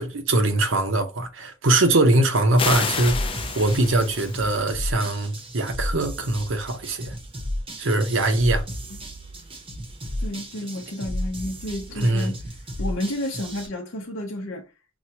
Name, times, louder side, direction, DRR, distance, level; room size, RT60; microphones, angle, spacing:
voice 1, 0.0-3.3 3.5-7.1 7.8-8.6 11.9-12.3, right 2 dB, 65° right, 0.9 m, -22 dB
sound 1, 2.6-4.6, left 5 dB, 25° left, 0.5 m, -29 dB
sound 2, 3.0-13.7, equal, 25° right, 0.9 m, -33 dB
voice 2, 10.2-12.4 12.8-14.7, left 1 dB, 70° left, 0.8 m, -31 dB
6.1 x 2.4 x 2.8 m
head